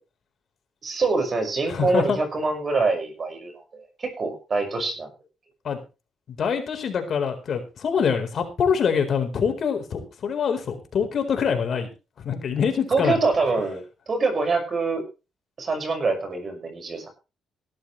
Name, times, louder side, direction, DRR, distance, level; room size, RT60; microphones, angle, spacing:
voice 1, 0.8-5.1 12.9-15.0 15.6-17.1, right 3 dB, 40° right, 5 dB, 5.9 m, -25 dB
voice 2, 1.7-2.2 5.6-5.8 6.3-11.9 12.2-13.2, left 6 dB, 55° left, 5 dB, 4.3 m, -25 dB
17.5 x 12.5 x 3.3 m, 0.31 s
cardioid pair, 90°, 0 cm